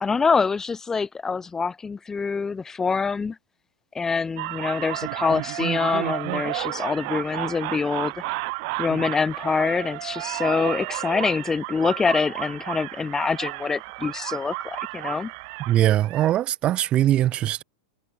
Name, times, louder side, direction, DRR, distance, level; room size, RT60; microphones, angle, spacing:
voice 1, 0.0-3.4 3.9-8.1 8.8-15.3, left 5 dB, 15° left, 1.2 m, -25 dB
sound 1, 4.4-16.3, right 29 dB, 55° right, 2.2 m, -32 dB
voice 2, 15.7-17.6, right 13 dB, 35° right, 1.7 m, -21 dB
hypercardioid pair, 120°, 3 cm